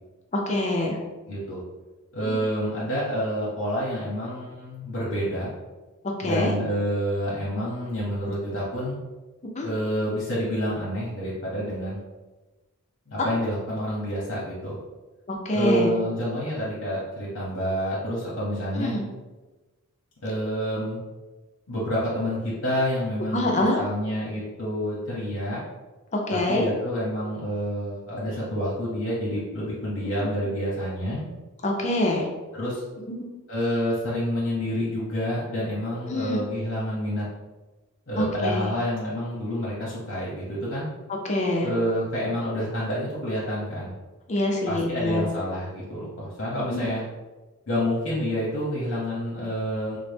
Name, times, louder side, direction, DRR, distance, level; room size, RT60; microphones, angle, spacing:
voice 1, 0.3-1.0 2.2-2.3 6.2-6.5 9.6-9.7 13.2-13.3 15.3-15.9 18.7-19.1 23.3-23.8 26.1-26.7 30.0-30.3 31.6-32.3 36.1-36.4 38.2-38.7 41.2-41.7 44.3-45.2 46.7-46.9, left 1 dB, 30° left, 0 dB, 0.5 m, -25 dB
voice 2, 1.3-1.6 2.1-5.5 6.2-9.0 9.6-12.0 13.1-14.8 15.5-19.0 20.2-21.0 21.7-25.6 26.3-31.2 32.5-32.8 33.5-37.3 38.1-40.9 41.6-44.0 44.7-47.0 47.7-50.0, equal, 60° left, -7 dB, 0.8 m, -28 dB
3.8 x 2.0 x 3.3 m, 1.2 s
head